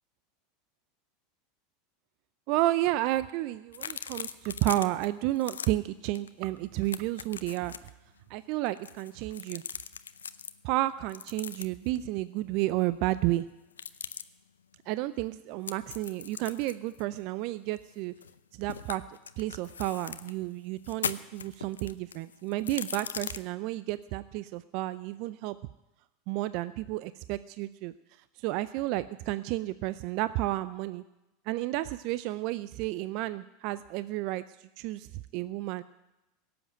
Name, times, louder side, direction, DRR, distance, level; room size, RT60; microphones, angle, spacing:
voice 1, 2.5-7.9 8.3-9.6 10.6-13.5 14.9-18.1 18.5-19.0 19.4-25.6 26.3-27.9 28.4-31.0 31.5-35.8, right 16 dB, 55° right, 15 dB, 0.4 m, -31 dB
sound 1, 3.7-5.1 5.4-5.7 6.1-6.3 6.6-7.9 8.7-10.5 11.1-11.9 13.7-14.2 15.7-18.4 18.7-20.3 20.8-23.4, left 7 dB, 85° left, 0.6 m, -39 dB
17.5 x 7.9 x 9.0 m, 0.98 s
hypercardioid pair, 90°, 0 cm